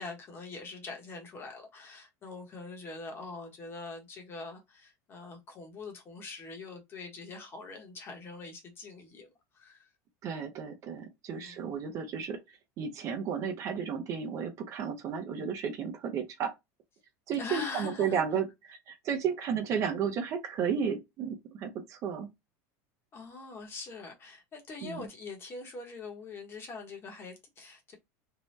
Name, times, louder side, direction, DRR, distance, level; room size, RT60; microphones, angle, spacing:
voice 1, 0.0-9.3 9.5-9.9 11.3-11.6 17.4-18.2 23.1-28.0, left 3 dB, 25° left, 0.9 m, -43 dB
voice 2, 10.2-16.5 17.3-22.3 24.8-25.1, right 7 dB, 35° right, 0.6 m, -33 dB
2.7 x 2.1 x 3.2 m
supercardioid pair, 155°, 9 cm